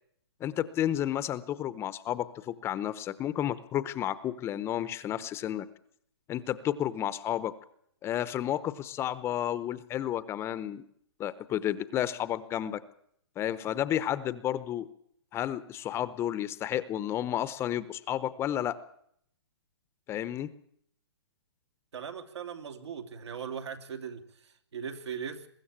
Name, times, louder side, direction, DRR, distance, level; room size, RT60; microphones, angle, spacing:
voice 1, 0.4-5.7 6.3-7.5 8.0-10.8 11.2-12.8 13.4-14.9 15.3-18.8 20.1-20.5, left 11 dB, 15° left, 15 dB, 0.8 m, -31 dB
voice 2, 21.9-25.5, right 7 dB, 80° right, 6 dB, 3.1 m, -39 dB
23.0 x 14.0 x 8.8 m, 0.68 s
hypercardioid pair, 145°, 14 cm